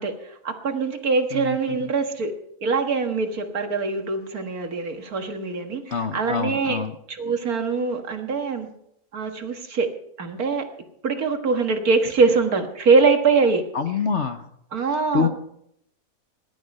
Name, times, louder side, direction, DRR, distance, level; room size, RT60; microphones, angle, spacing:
voice 1, 0.0-2.3 2.6-6.8 7.1-8.7 9.1-9.9 10.2-10.7 11.0-13.7 14.7-15.3, right 4 dB, 60° right, 6 dB, 2.1 m, -23 dB
voice 2, 1.3-1.9 5.9-6.9 13.7-14.5 15.1-15.3, left 5 dB, 50° left, 8 dB, 1.1 m, -26 dB
19.5 x 11.5 x 5.4 m, 0.75 s
omnidirectional pair, 1.8 m